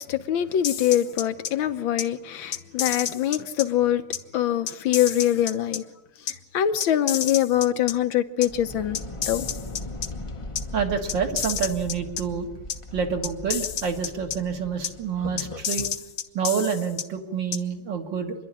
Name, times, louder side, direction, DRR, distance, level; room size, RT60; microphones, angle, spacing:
voice 1, 0.0-4.0 4.3-5.8 6.5-9.0 9.3-9.5, left 11 dB, 75° left, 1.6 m, -23 dB
sound 1, 0.6-1.5 2.0-2.1 2.5-3.7 4.1-4.2 4.7-5.8 6.3-6.4 6.8-7.9 8.4-8.5 9.0-10.1 10.6-10.7 11.1-12.2 12.7-12.8 13.2-14.4 14.8-14.9 15.4-17.0 17.5-17.6, left 8 dB, 60° left, 1.4 m, -30 dB
sound 2, 8.4-16.0, left 2 dB, 30° left, 0.5 m, -38 dB
voice 2, 10.7-12.5 12.9-15.9 16.3-18.3, right 6 dB, 65° right, 2.4 m, -27 dB
27.0 x 11.5 x 9.9 m
omnidirectional pair, 2.2 m